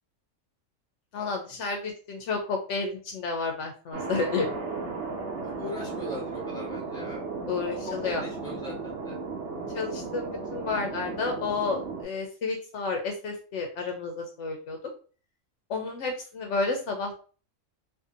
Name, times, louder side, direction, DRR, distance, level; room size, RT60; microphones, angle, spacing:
voice 1, 1.1-4.5 7.5-8.2 9.7-14.8 15.7-17.2, left 4 dB, 70° left, 3 dB, 0.8 m, -31 dB
Thunder, 3.9-12.0, right 4 dB, 65° right, 1.1 m, -35 dB
voice 2, 5.4-7.2 7.8-9.2, left 1 dB, 5° left, -4 dB, 0.8 m, -39 dB
2.6 x 2.5 x 2.4 m, 0.39 s
omnidirectional pair, 1.3 m